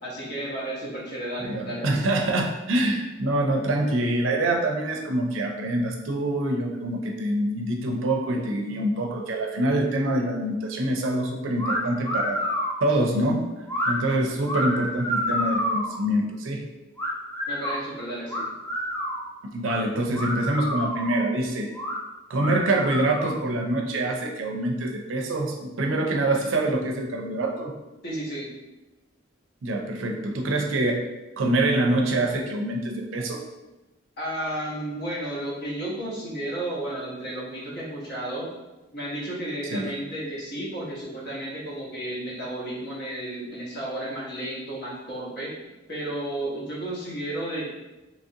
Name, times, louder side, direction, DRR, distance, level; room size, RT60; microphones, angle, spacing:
voice 1, 0.0-2.1 17.5-18.5 28.0-28.5 34.2-38.5 38.9-47.6, right 1 dB, 55° left, -5 dB, 1.0 m, -33 dB
voice 2, 1.5-12.4 12.8-13.4 13.9-16.6 19.4-21.7 22.3-27.7 29.6-31.0 31.4-33.4 39.7-39.9, right 1 dB, 80° right, 2 dB, 0.5 m, -25 dB
sound 1, 11.6-11.8 12.0-12.8 13.7-13.9 14.4-16.0 17.0-17.8 18.3-19.2 19.6-19.8 20.1-21.2 21.7-22.0 22.3-23.5, equal, 15° left, 0.6 m, -29 dB
3.0 x 2.5 x 2.7 m, 1.1 s
head